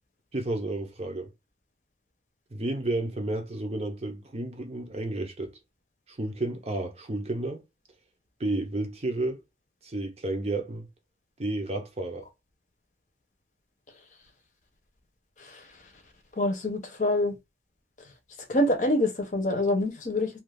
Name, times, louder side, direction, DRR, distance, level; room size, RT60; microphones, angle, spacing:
voice 1, 0.3-1.3 2.5-5.5 6.1-7.6 8.4-9.4 9.8-10.9 11.4-12.3, right 2 dB, 35° right, 0.6 m, -31 dB
voice 2, 16.4-17.3 18.5-20.3, left 1 dB, 45° left, 0.7 m, -25 dB
2.6 x 2.4 x 3.4 m
head